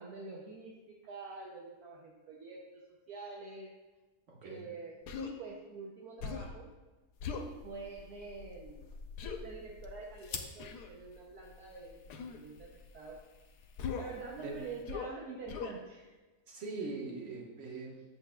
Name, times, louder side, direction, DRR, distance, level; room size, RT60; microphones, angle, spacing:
voice 1, 0.0-3.7 4.4-6.7 7.6-8.9 9.4-12.0 12.3-13.2 14.0-16.2, right 3 dB, 70° right, -2 dB, 1.2 m, -46 dB
voice 2, 4.3-4.6 14.4-14.6 16.5-17.9, right 3 dB, 50° right, -2 dB, 1.6 m, -41 dB
Human voice, 5.1-5.3 6.2-6.6 7.2-7.5 9.2-9.4 10.6-10.9 12.1-12.4 13.8-14.2 14.8-15.2 15.5-15.8, left 6 dB, 85° left, 1.2 m, -39 dB
sound 1, 7.1-14.9, left 5 dB, 65° left, 0.7 m, -50 dB
8.8 x 6.8 x 2.3 m, 1.2 s
omnidirectional pair, 1.7 m